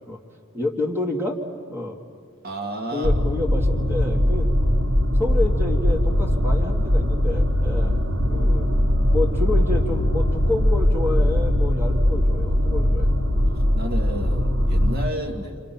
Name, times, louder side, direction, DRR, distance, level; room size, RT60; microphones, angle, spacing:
voice 1, 0.5-1.4 1.7-2.0 2.9-4.5 5.1-8.0 8.3-8.7 9.1-13.1 15.3-15.5, left 2 dB, 10° right, -1 dB, 2.1 m, -29 dB
voice 2, 2.4-3.2 13.7-15.6, equal, 45° right, 3 dB, 1.9 m, -31 dB
sound 1, 3.0-15.1, equal, 85° right, 1.4 m, -20 dB
28.5 x 28.5 x 5.9 m, 2.1 s
head